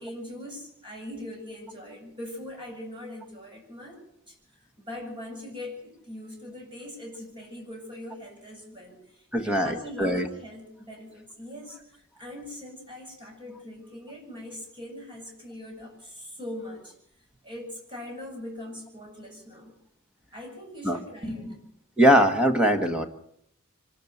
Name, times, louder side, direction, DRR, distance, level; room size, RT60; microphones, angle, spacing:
voice 1, 0.0-4.4 4.8-16.9 17.4-19.8 20.3-21.6, left 1 dB, 25° right, 0 dB, 7.9 m, -41 dB
voice 2, 9.3-10.3 20.8-21.0 22.0-23.0, equal, 5° right, 5 dB, 1.5 m, -21 dB
25.5 x 13.0 x 8.0 m, 0.72 s
head